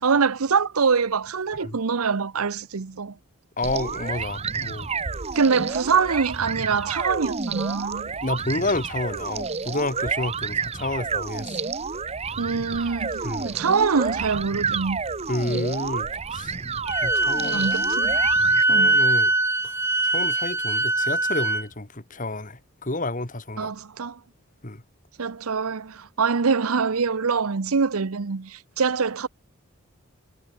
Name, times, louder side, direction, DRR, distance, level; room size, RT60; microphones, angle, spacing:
voice 1, 0.0-3.1 5.3-8.1 12.4-15.0 15.5-15.6 17.5-18.2 18.7-19.0 23.6-24.2 25.2-29.3, right 5 dB, 80° right, 0.8 m, -24 dB
voice 2, 3.6-4.9 8.2-11.6 13.2-13.6 15.3-16.6 17.0-17.7 18.6-19.3 19.6-19.8 20.0-23.7 24.6-24.8, left 2 dB, 35° left, 2.1 m, -30 dB
sound 1, 3.6-18.6, right 5 dB, 30° right, 0.8 m, -30 dB
Wind instrument woodwind instrument, 16.9-21.6, right 2 dB, 10° right, 1.9 m, -22 dB
head